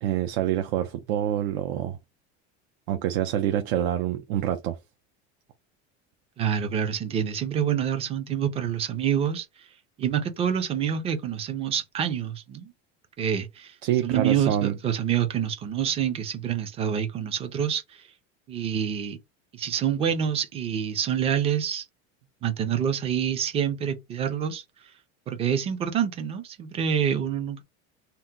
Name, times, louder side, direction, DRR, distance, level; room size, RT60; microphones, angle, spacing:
voice 1, 0.0-2.0 2.9-4.8 13.8-14.8, right 11 dB, 80° right, 0.5 m, -26 dB
voice 2, 6.4-9.5 10.0-12.7 13.2-13.7 14.0-18.0 18.5-19.2 19.5-21.8 22.4-24.6 25.3-27.6, right 8 dB, 20° right, 0.3 m, -27 dB
2.8 x 2.0 x 3.5 m
cardioid pair, 165°, 33 cm